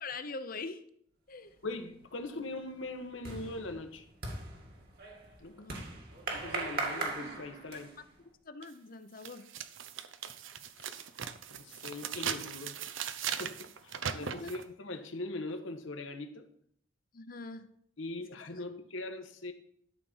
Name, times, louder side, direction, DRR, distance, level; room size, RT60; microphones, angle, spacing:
voice 1, 0.0-0.8 1.3-1.5 5.6-5.8 8.4-9.5 14.2-14.5 17.1-17.7 18.5-18.6, left 3 dB, 45° left, 0.8 m, -43 dB
voice 2, 1.6-4.0 5.4-5.6 6.3-7.9 10.8-11.0 11.5-12.8 13.4-16.5 18.0-19.5, left 2 dB, 85° left, 1.3 m, -41 dB
sound 1, 1.6-2.0 2.3-8.1, right 3 dB, 50° right, 2.2 m, -39 dB
sound 2, 8.6-8.7 9.2-14.6, right 8 dB, 80° right, 0.7 m, -39 dB
12.5 x 4.3 x 7.2 m
head